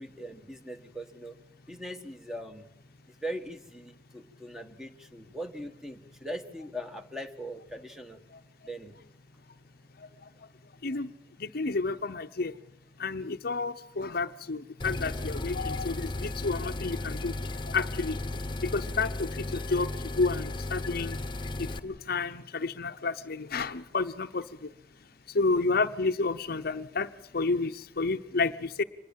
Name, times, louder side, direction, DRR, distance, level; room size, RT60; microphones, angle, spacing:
voice 1, 0.0-1.3 1.7-2.7 3.2-8.2 8.6-8.9, equal, 5° right, 8 dB, 1.5 m, -40 dB
voice 2, 11.4-12.5 13.0-17.3 17.7-18.2 18.6-19.9 20.2-21.2 21.6-24.4 25.3-27.1 27.3-28.8, left 3 dB, 60° left, 10 dB, 0.8 m, -30 dB
sound 1, 14.8-21.8, left 2 dB, 30° left, 1.1 m, -35 dB
25.5 x 20.5 x 7.5 m, 0.75 s
head